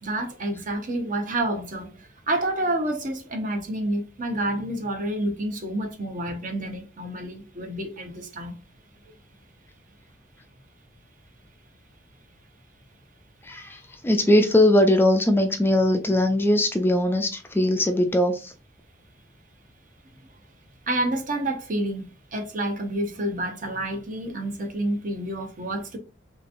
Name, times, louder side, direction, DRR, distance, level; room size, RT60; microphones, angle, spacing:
voice 1, 0.0-8.6 20.9-26.0, right 1 dB, 50° right, 0.8 m, -29 dB
voice 2, 13.4-18.5, left 1 dB, 15° left, 0.3 m, -20 dB
3.3 x 2.9 x 2.6 m
head